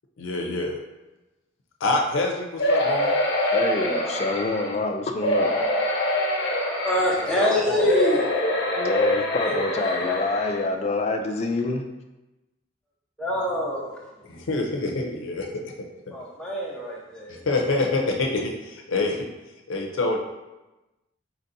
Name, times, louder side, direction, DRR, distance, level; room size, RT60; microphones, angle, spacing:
voice 1, 0.2-0.8 1.8-3.1 7.4-7.9 14.2-15.9 17.3-19.3 19.7-20.2, left 2 dB, 85° left, 2 dB, 0.5 m, -26 dB
sound 1, 2.6-4.8 5.2-7.4 7.8-10.6 11.2-11.3 11.6-11.7, left 1 dB, 55° left, 1.0 m, -25 dB
voice 2, 3.5-5.7 8.8-11.9, left 3 dB, 35° left, 5 dB, 0.3 m, -26 dB
voice 3, 6.8-8.2 9.4-10.2 13.2-14.0 16.1-17.4, left 1 dB, 5° left, -5 dB, 0.8 m, -26 dB
4.3 x 4.0 x 2.6 m, 1.0 s
head